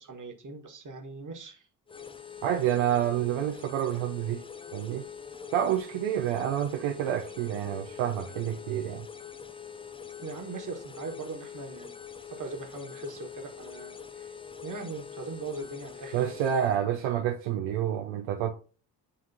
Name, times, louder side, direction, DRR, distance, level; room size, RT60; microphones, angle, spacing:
voice 1, 0.0-1.7 10.2-11.9 12.3-14.3 14.6-16.3, right 3 dB, 40° right, 1.6 m, -40 dB
sound 1, 1.9-16.8, left 7 dB, 10° left, 0.5 m, -44 dB
voice 2, 2.4-4.4 4.7-5.0 5.5-9.1 16.1-18.5, right 10 dB, 70° right, 0.8 m, -28 dB
10.0 x 3.6 x 2.8 m
hypercardioid pair, 40°, 49 cm